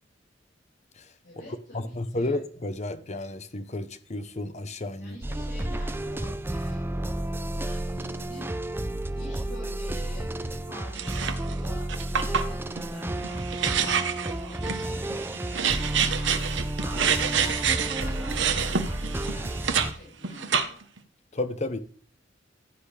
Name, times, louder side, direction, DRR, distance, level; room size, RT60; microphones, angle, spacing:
voice 1, 1.2-2.4 5.0-6.8 7.5-8.5 9.1-20.8, left 1 dB, 60° left, 5.3 m, -47 dB
voice 2, 1.7-5.2 21.3-21.8, left 2 dB, 35° left, 0.9 m, -32 dB
sound 1, 5.2-19.9, right 1 dB, 10° right, 0.5 m, -31 dB
sound 2, 10.9-11.5 11.9-19.9 20.2-21.0, right 7 dB, 70° right, 1.1 m, -27 dB
15.0 x 8.1 x 3.4 m
head